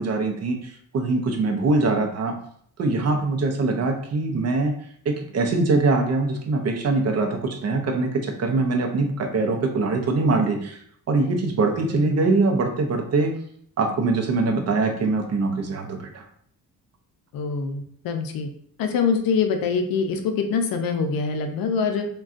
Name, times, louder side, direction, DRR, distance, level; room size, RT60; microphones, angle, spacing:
voice 1, 0.0-2.4 2.8-4.7 5.1-10.8 11.1-13.3 13.8-16.2, right 3 dB, 45° right, 3 dB, 0.5 m, -23 dB
voice 2, 11.8-12.2 17.3-18.5 18.8-22.1, left 5 dB, 80° left, 6 dB, 0.5 m, -24 dB
3.6 x 2.2 x 2.4 m, 0.64 s
cardioid pair, 125°, 35 cm